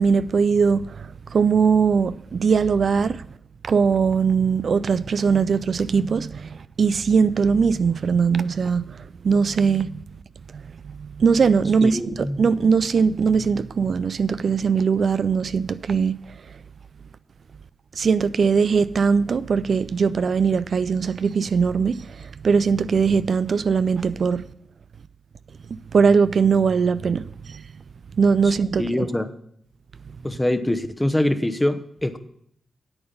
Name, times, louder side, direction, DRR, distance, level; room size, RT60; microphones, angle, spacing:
voice 1, 0.0-3.3 3.6-10.0 10.5-16.2 17.9-24.5 25.7-27.6 28.2-29.1, right 5 dB, 65° right, 0.3 m, -21 dB
voice 2, 11.8-12.4 28.8-29.3 30.2-32.2, left 1 dB, 15° left, 0.9 m, -24 dB
8.8 x 8.6 x 5.4 m
cardioid pair, 55°, 0 cm